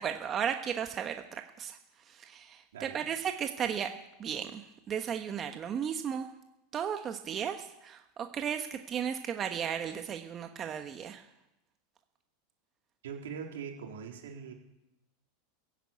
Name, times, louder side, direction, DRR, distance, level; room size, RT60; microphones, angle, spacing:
voice 1, 0.0-1.8 2.1-3.9 4.2-4.6 4.9-6.3 6.7-11.2, right 8 dB, 30° right, 6 dB, 1.3 m, -35 dB
voice 2, 13.0-14.5, right 6 dB, 85° right, 1 dB, 4.0 m, -42 dB
16.0 x 10.5 x 8.6 m, 0.90 s
supercardioid pair, 120°, 0 cm